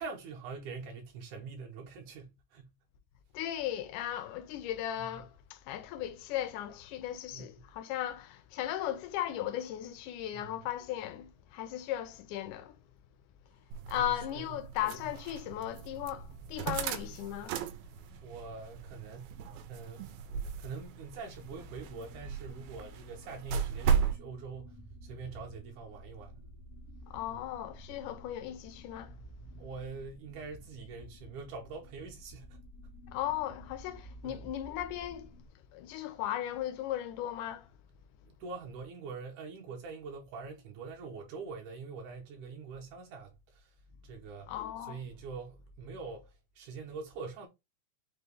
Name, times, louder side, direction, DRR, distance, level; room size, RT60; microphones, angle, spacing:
voice 1, 0.0-2.7 5.0-5.2 7.3-7.7 10.3-10.5 13.9-14.6 15.0-15.2 18.2-19.4 19.7-20.1 20.6-26.4 27.3-27.4 29.6-32.6 34.2-34.5 38.3-43.7 44.0-44.5 44.9-47.5, right 4 dB, 70° right, 2.0 m, -44 dB
voice 2, 3.3-12.8 13.9-17.6 27.1-29.2 33.1-35.3 35.7-37.7 44.5-45.0, left 12 dB, 85° left, 1.7 m, -37 dB
sound 1, 13.7-24.2, right 7 dB, 90° right, 2.3 m, -36 dB
sound 2, 21.4-35.5, equal, 60° left, 0.8 m, -52 dB
5.7 x 2.2 x 3.4 m
omnidirectional pair, 4.1 m